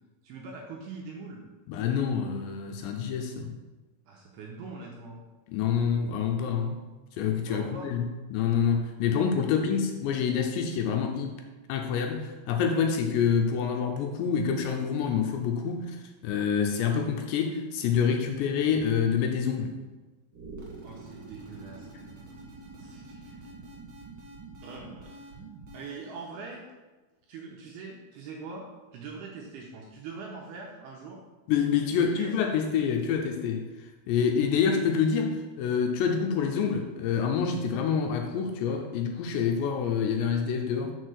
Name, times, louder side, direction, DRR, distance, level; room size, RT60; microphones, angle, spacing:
voice 1, 0.2-1.4 4.1-5.2 7.5-7.9 20.8-22.1 22.8-23.4 24.6-25.3 25.7-26.7 27.3-31.2 31.9-32.4, right 4 dB, 80° right, -1 dB, 2.5 m, -42 dB
voice 2, 1.7-3.5 5.5-6.9 7.2-11.4 11.7-16.0 16.2-19.8 31.5-33.7 34.1-40.9, left 7 dB, 80° left, 3 dB, 2.7 m, -27 dB
sound 1, 20.3-26.1, right 3 dB, 45° right, 1.8 m, -46 dB
6.6 x 4.6 x 6.3 m, 1.2 s
omnidirectional pair, 5.3 m